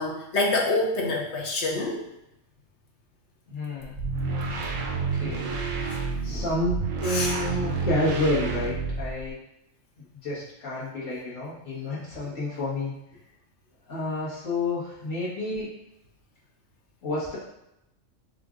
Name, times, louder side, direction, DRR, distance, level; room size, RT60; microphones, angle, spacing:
voice 1, 0.0-2.0 7.0-7.3, left 2 dB, 65° left, 0 dB, 1.1 m, -26 dB
voice 2, 3.5-4.0 5.1-5.5 6.2-9.4 10.2-12.9 13.9-15.7 17.0-17.4, left 2 dB, 80° left, -8 dB, 1.9 m, -29 dB
sound 1, 3.8-9.3, right 4 dB, 80° right, 1.1 m, -29 dB
6.9 x 2.6 x 2.5 m, 0.87 s
omnidirectional pair, 1.3 m